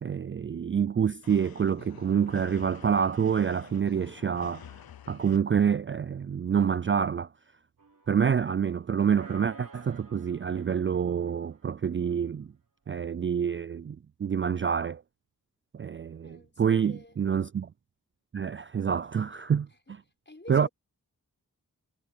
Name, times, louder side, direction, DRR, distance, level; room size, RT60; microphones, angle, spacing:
voice 1, 0.0-4.7 5.1-7.3 8.1-12.5 12.9-15.0 15.7-17.7 18.3-19.7 20.5-20.7, right 7 dB, 35° right, 0.4 m, -27 dB
sound 1, 1.2-5.4, left 9 dB, 75° left, 0.7 m, -48 dB
sound 2, 7.8-8.7 9.1-11.9, right 3 dB, 65° right, 2.9 m, -52 dB
voice 2, 16.2-17.2 19.7-20.0 20.2-20.7, left 1 dB, 30° left, 6.5 m, -50 dB
cardioid pair, 40°, 36 cm